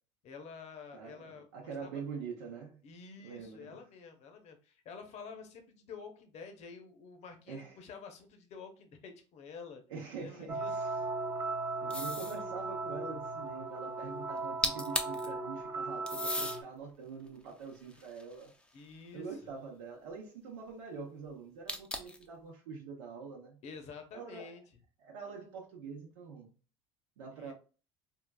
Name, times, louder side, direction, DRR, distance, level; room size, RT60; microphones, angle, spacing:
voice 1, 0.2-2.0 2.8-9.8 10.1-10.7 18.7-19.5 23.6-24.6 27.4-27.5, left 5 dB, 50° left, 0.8 m, -49 dB
voice 2, 0.9-2.8 3.2-3.8 7.5-7.8 9.9-11.0 11.8-18.5 19.1-23.6 24.1-24.5 25.0-26.5 27.2-27.5, right 5 dB, 85° right, 0.7 m, -45 dB
sound 1, 10.5-16.6, right 3 dB, 25° right, 0.7 m, -37 dB
sound 2, 11.9-12.4 14.4-14.5 14.6-15.3 16.1-16.6 17.3-18.7 21.7-22.2, left 1 dB, 5° left, 0.5 m, -36 dB
3.7 x 2.3 x 2.3 m
supercardioid pair, 90°, 14 cm